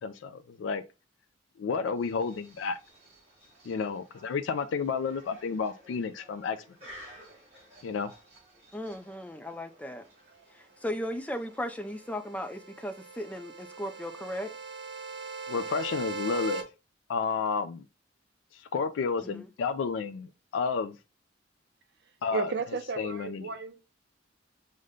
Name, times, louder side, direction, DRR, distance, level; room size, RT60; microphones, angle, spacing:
voice 1, 0.0-0.8 1.6-2.8 3.7-6.6 7.8-8.1 15.5-16.6 17.1-17.9 18.5-21.0 22.2-22.5 23.0-23.4, left 5 dB, 80° left, 0.3 m, -31 dB
sound 1, 1.9-12.3, equal, 35° right, 2.1 m, -55 dB
voice 2, 8.7-10.0 10.5-14.5 19.2-19.5, equal, 10° left, 0.3 m, -36 dB
sound 2, 11.7-16.6, right 4 dB, 85° right, 0.9 m, -40 dB
voice 3, 22.3-23.8, right 5 dB, 60° right, 0.5 m, -33 dB
5.0 x 2.1 x 3.6 m
head